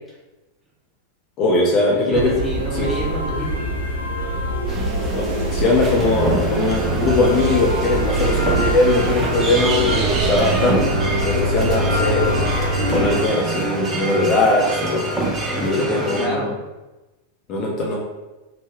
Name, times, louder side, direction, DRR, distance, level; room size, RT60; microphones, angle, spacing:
voice 1, 1.4-2.3 2.7-2.9 5.1-10.9 11.3-12.5 12.9-15.0 15.6-16.5 17.5-18.0, left 2 dB, 35° left, -2 dB, 0.6 m, -20 dB
voice 2, 1.9-3.6 15.4-16.6, right 1 dB, 5° right, -5 dB, 0.9 m, -28 dB
sound 1, 2.1-13.2, right 1 dB, 75° right, 0.6 m, -24 dB
sound 2, 4.7-16.3, right 2 dB, 25° right, 0.5 m, -26 dB
3.1 x 2.2 x 3.4 m, 1.1 s
figure-of-eight pair, 90°, 0 cm